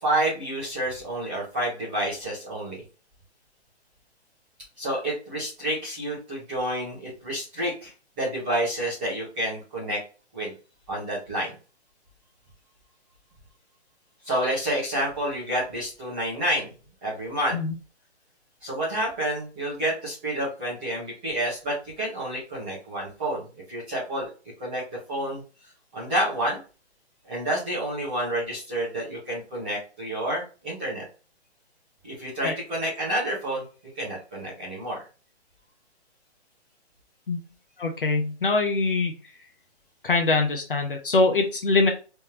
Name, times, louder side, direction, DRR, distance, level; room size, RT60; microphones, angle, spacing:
voice 1, 0.0-2.8 4.8-10.0 10.3-10.5 10.9-11.5 14.2-16.7 17.0-17.6 18.6-23.4 23.7-24.3 24.6-24.8 25.1-25.4 25.9-26.6 27.2-31.0 32.0-33.6 33.9-35.0, right 1 dB, 10° right, -10 dB, 1.0 m, -29 dB
voice 2, 37.8-39.1 40.0-41.9, left 3 dB, 50° left, 4 dB, 0.7 m, -23 dB
3.4 x 3.2 x 2.9 m, 0.34 s
hypercardioid pair, 175°, 35 cm